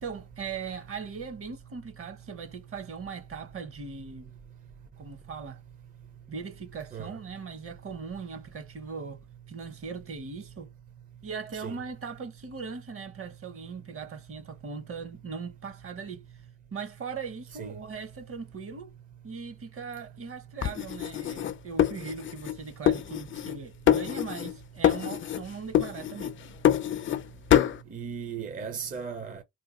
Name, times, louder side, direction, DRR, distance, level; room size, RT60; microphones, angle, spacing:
voice 1, 0.0-4.3 5.0-5.6 6.3-9.2 9.5-10.7 11.2-16.2 16.7-18.9 19.2-26.3, right 5 dB, 45° right, 0.9 m, -39 dB
sound 1, 20.6-22.6 22.9-23.6 23.9-24.6 24.8-25.4 25.7-27.2 27.5-27.8, left 10 dB, 40° left, 0.4 m, -25 dB
voice 2, 27.9-29.4, right 6 dB, 30° right, 0.5 m, -36 dB
2.8 x 2.3 x 3.6 m
cardioid pair, 90°, 30 cm